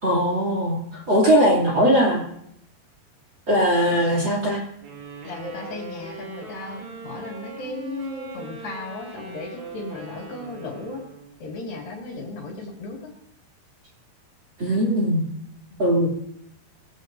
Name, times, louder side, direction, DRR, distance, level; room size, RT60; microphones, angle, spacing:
voice 1, 0.0-2.2 3.5-4.6 14.6-15.2 15.8-16.1, equal, 30° right, -2 dB, 2.9 m, -20 dB
sound 1, 4.8-11.4, right 3 dB, 80° right, 8.4 m, -40 dB
voice 2, 5.2-11.0 11.4-13.1 15.7-15.8, left 2 dB, 60° left, -1 dB, 4.2 m, -35 dB
21.0 x 16.0 x 2.7 m, 0.74 s
omnidirectional pair, 4.8 m